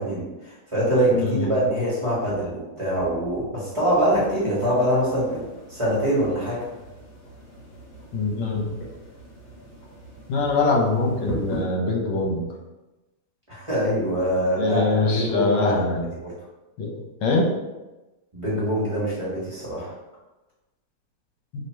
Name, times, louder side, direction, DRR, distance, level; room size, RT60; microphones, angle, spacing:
voice 1, 0.0-6.6 13.5-14.8 15.1-15.8 16.1-16.3 18.3-19.9, right 1 dB, 20° right, -9 dB, 0.9 m, -24 dB
voice 2, 1.1-1.5 8.1-8.7 10.3-12.4 14.6-16.1 16.8-16.9 17.2-17.5, left 3 dB, 75° left, -1 dB, 1.7 m, -23 dB
sound 1, 3.7-11.6, equal, 60° left, 1.5 m, -39 dB
3.3 x 2.9 x 4.3 m, 1.1 s
omnidirectional pair, 2.4 m